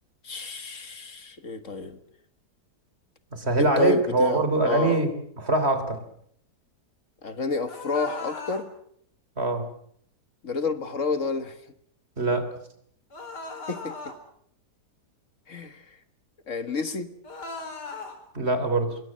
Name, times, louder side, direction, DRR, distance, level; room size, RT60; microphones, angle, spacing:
voice 1, 0.2-2.0 3.6-5.0 7.2-8.7 10.4-11.6 13.7-13.9 15.5-15.8 16.5-17.1, left 4 dB, 50° left, 10 dB, 1.8 m, -29 dB
voice 2, 3.3-5.1 5.4-6.0 9.4-9.7 12.2-12.5 18.3-18.9, right 2 dB, 35° right, 9 dB, 3.6 m, -23 dB
sound 1, 7.7-8.7 13.1-14.2 17.2-18.2, left 3 dB, 75° left, 4.8 m, -38 dB
25.5 x 22.0 x 7.5 m, 0.69 s
omnidirectional pair, 1.8 m